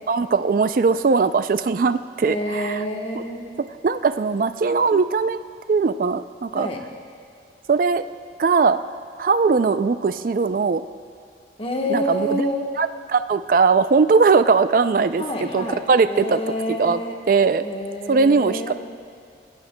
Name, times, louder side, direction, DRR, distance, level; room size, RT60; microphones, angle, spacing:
voice 1, 0.1-2.8 3.6-5.4 5.7-6.7 7.7-8.0 8.4-8.8 9.2-10.8 11.9-12.4 12.8-16.4 16.8-17.0 17.3-17.6 18.1-18.7, right 4 dB, 50° right, 11 dB, 0.3 m, -19 dB
voice 2, 2.2-3.4 6.5-6.8 11.6-12.7 15.2-15.8 16.1-17.1 17.6-18.7, equal, 30° left, 1 dB, 1.1 m, -27 dB
20.0 x 16.5 x 2.2 m, 2.3 s
head